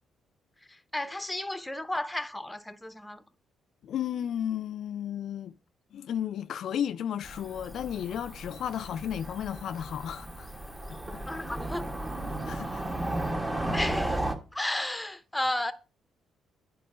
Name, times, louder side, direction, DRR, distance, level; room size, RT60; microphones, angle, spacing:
voice 1, 0.7-3.2 11.3-11.9 13.7-14.2 14.5-15.7, left 1 dB, 10° left, 0.8 m, -33 dB
voice 2, 3.8-5.5 5.9-10.5 10.9-11.2 12.4-12.8 13.5-13.8, left 9 dB, 70° left, 0.3 m, -34 dB
Cricket / Motor vehicle (road), 7.2-14.3, right 1 dB, 20° right, 1.2 m, -34 dB
9.3 x 4.6 x 4.9 m
cardioid pair, 90°, 0 cm